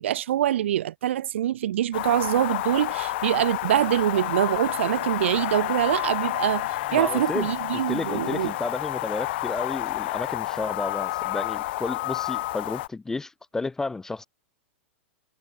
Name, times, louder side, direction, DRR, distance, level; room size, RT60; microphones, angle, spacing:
voice 1, 0.0-8.5, right 12 dB, 85° right, 0.5 m, -24 dB
sound 1, 1.9-12.9, left 18 dB, 60° left, 0.9 m, -30 dB
Guitar, 3.7-11.4, right 15 dB, 35° right, 7.0 m, -55 dB
voice 2, 6.9-7.5 7.9-14.3, left 3 dB, 10° left, 0.6 m, -32 dB
supercardioid pair, 145°, 6 cm